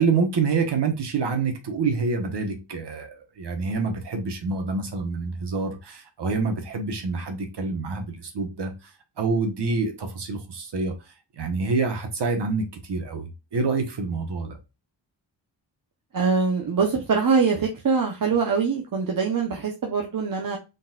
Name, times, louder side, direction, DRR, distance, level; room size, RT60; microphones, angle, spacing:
voice 1, 0.0-8.7 9.2-10.9 11.4-14.6, right 4 dB, 65° right, 1.2 m, -27 dB
voice 2, 16.1-20.6, right 5 dB, 45° right, 0.9 m, -23 dB
4.0 x 4.0 x 2.4 m
wide cardioid pair, 160°, 44 cm